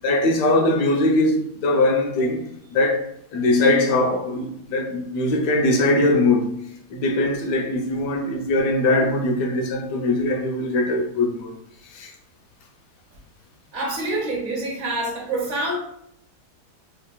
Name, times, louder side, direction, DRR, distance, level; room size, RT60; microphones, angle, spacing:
voice 1, 0.0-3.1 3.3-6.5 6.9-11.6 11.9-12.1, left 2 dB, 80° left, 1.2 m, -21 dB
voice 2, 13.7-15.8, right 2 dB, 65° right, 1.2 m, -26 dB
4.5 x 2.9 x 2.2 m
omnidirectional pair, 1.7 m